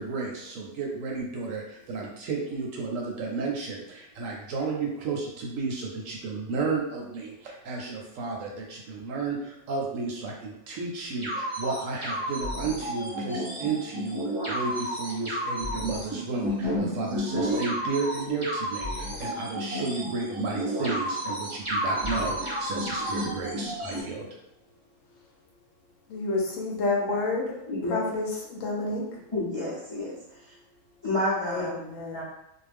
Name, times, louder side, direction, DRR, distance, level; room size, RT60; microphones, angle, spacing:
voice 1, 0.0-24.3, right 4 dB, 70° right, 0 dB, 0.9 m, -32 dB
sound 1, 11.2-24.0, equal, 30° right, 0.6 m, -31 dB
voice 2, 26.1-27.5 27.9-29.0 31.5-32.2, left 3 dB, 70° left, -1 dB, 0.9 m, -29 dB
voice 3, 27.7-28.0 29.3-30.2 31.0-31.8 32.1-32.2, left 1 dB, 30° left, -8 dB, 0.4 m, -29 dB
2.5 x 2.0 x 3.3 m, 0.82 s
omnidirectional pair, 1.5 m